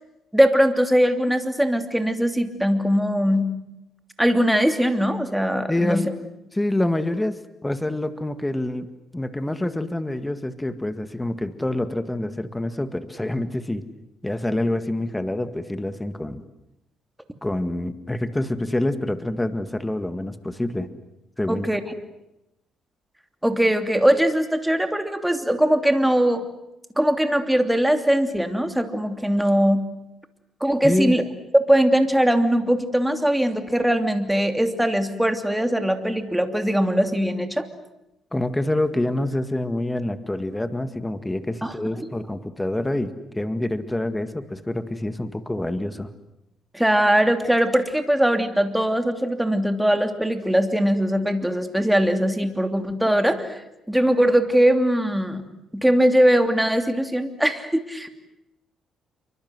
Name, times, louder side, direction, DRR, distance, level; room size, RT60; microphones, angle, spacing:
voice 1, 0.3-3.5 4.2-6.0 21.5-21.8 23.4-26.4 27.0-29.8 30.6-31.2 31.7-37.7 41.6-42.1 46.7-53.6 53.9-55.4 55.7-58.1, equal, 5° right, 7 dB, 2.9 m, -21 dB
voice 2, 5.7-6.2 6.5-8.9 9.1-13.8 14.2-16.4 17.4-20.9 21.4-21.6 30.8-31.2 38.3-46.1, left 1 dB, 10° left, 10 dB, 1.9 m, -26 dB
28.5 x 24.0 x 7.9 m, 0.88 s
cardioid pair, 90°, 0 cm